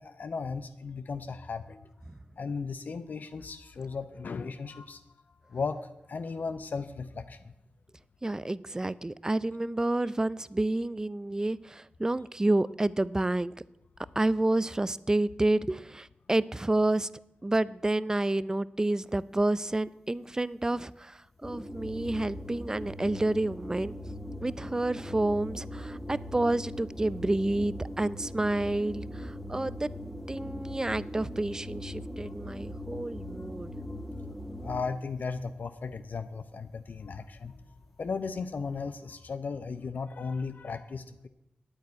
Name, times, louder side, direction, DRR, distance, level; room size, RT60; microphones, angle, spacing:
voice 1, 0.0-1.8 2.4-5.0 5.5-5.8 6.1-7.5 32.2-32.3 34.6-37.6 38.0-41.3, left 4 dB, 65° left, 10 dB, 0.7 m, -36 dB
voice 2, 8.2-13.5 14.2-17.1 17.4-21.2 21.4-23.9 24.4-29.9 30.3-33.7, right 2 dB, 20° right, 19 dB, 0.4 m, -29 dB
sound 1, 21.4-35.1, left 1 dB, ahead, 2.1 m, -40 dB
9.3 x 8.8 x 9.6 m, 0.87 s
wide cardioid pair, 90°, 3 cm